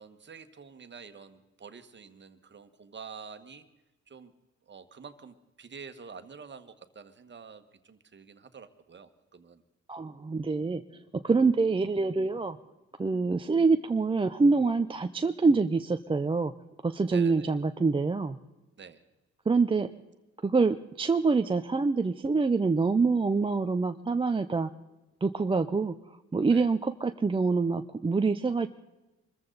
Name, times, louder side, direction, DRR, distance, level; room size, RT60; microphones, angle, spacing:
voice 1, 0.0-3.7 4.1-4.3 4.7-9.6 17.1-17.6 18.8-19.0 26.5-26.7, right 5 dB, 35° right, 9 dB, 1.5 m, -48 dB
voice 2, 9.9-10.8 11.2-12.6 13.0-16.5 16.8-18.4 19.5-19.9 20.4-24.7 25.2-25.9 26.3-28.7, right 4 dB, 15° right, 8 dB, 0.6 m, -26 dB
24.5 x 14.5 x 4.0 m, 1.0 s
cardioid pair, 90°, 30 cm